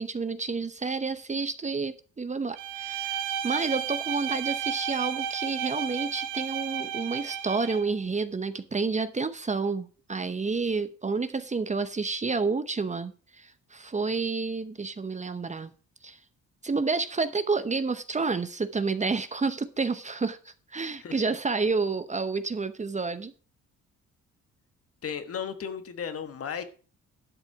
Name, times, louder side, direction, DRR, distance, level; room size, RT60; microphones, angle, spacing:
voice 1, 0.0-15.7 16.0-16.2 16.6-23.3, right 4 dB, 25° right, 0.8 m, -30 dB
Bowed string instrument, 2.6-7.9, right 8 dB, 80° right, 1.1 m, -33 dB
voice 2, 20.9-21.4 25.0-26.6, left 7 dB, 50° left, 1.4 m, -35 dB
12.0 x 7.1 x 4.8 m
cardioid pair, 90°, 30 cm